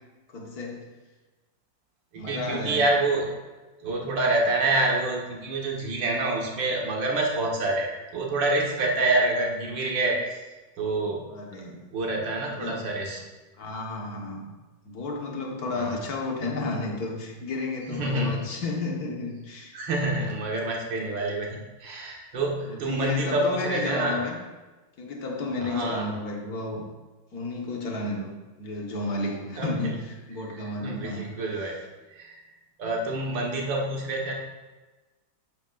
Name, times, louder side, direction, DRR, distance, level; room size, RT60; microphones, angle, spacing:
voice 1, 0.3-0.9 2.2-2.8 11.3-11.9 12.5-12.9 13.6-14.5 14.9-19.7 22.6-24.4 25.0-26.8 27.3-28.3 28.6-31.3 31.5-31.7, left 2 dB, 55° left, 0 dB, 1.9 m, -32 dB
voice 2, 2.1-3.3 3.8-10.2 10.8-11.2 11.9-13.2 15.7-15.9 17.9-18.3 19.7-24.2 25.7-26.1 29.6-29.8 30.6-31.7 32.1-32.4 32.8-34.3, right 2 dB, 80° right, -1 dB, 2.2 m, -27 dB
11.5 x 8.8 x 2.5 m, 1.2 s
omnidirectional pair, 2.0 m